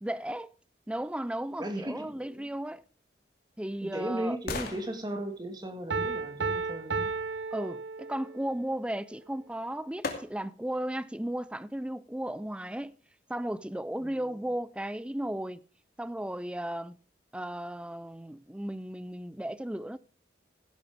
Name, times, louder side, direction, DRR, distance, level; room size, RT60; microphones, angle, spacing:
voice 1, 0.0-0.5 0.9-2.8 3.6-4.4 7.5-12.9 13.3-15.6 16.0-16.9 17.3-20.0, right 1 dB, 5° right, 0.5 m, -35 dB
voice 2, 1.6-2.5 3.8-7.1 14.0-14.4, right 1 dB, 25° right, 1.8 m, -36 dB
sound 1, 2.9-7.0 9.1-9.2 10.0-10.7 11.2-11.3, left 3 dB, 55° left, 2.7 m, -42 dB
Piano, 5.9-8.5, right 4 dB, 85° right, 0.8 m, -33 dB
15.5 x 11.5 x 3.5 m
head